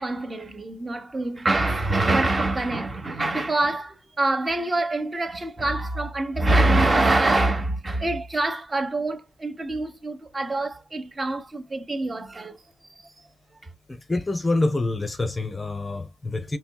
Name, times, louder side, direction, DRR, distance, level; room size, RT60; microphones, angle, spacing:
voice 1, 0.0-12.6 13.0-13.1, right 2 dB, 25° right, 1.1 m, -25 dB
voice 2, 13.9-16.6, left 2 dB, 20° left, 0.7 m, -26 dB
4.3 x 3.1 x 2.2 m
cardioid pair, 90°, 0 cm